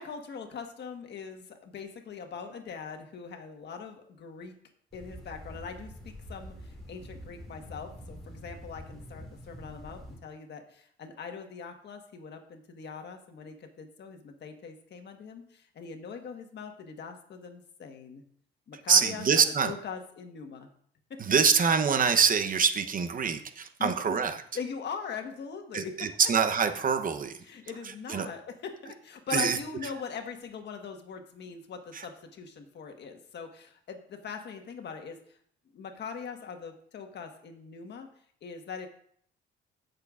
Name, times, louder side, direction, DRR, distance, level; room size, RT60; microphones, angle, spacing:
voice 1, 0.0-4.5 4.9-18.2 18.7-20.7 21.1-21.4 23.8-24.2 24.5-26.3 27.4-35.2 35.7-38.1 38.4-38.9, left 6 dB, 60° left, 5 dB, 1.4 m, -41 dB
sound 1, 4.9-10.2, equal, ahead, 3.4 m, -46 dB
voice 2, 18.9-19.7 21.2-24.4 25.7-27.4 28.1-28.3 29.3-29.6 31.9-32.0, right 6 dB, 45° right, 8 dB, 0.9 m, -25 dB
17.0 x 6.7 x 2.5 m, 0.63 s
cardioid pair, 90°, 20 cm